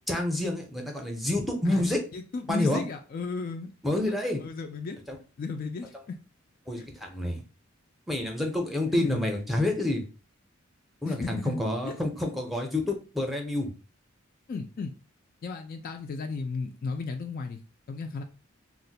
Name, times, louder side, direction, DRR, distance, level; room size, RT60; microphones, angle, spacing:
voice 1, 0.1-2.0 2.5-2.9 3.8-4.4 5.1-5.2 6.7-7.4 8.1-10.0 11.0-13.7, left 1 dB, ahead, 1 dB, 0.6 m, -28 dB
voice 2, 2.1-3.7 4.1-5.0 5.4-6.2 6.8-6.9 8.9-9.3 11.0-11.6 11.8-11.9 14.5-15.0 15.4-17.6 17.9-18.2, left 4 dB, 45° left, 6 dB, 0.3 m, -35 dB
2.5 x 2.1 x 3.9 m, 0.34 s
head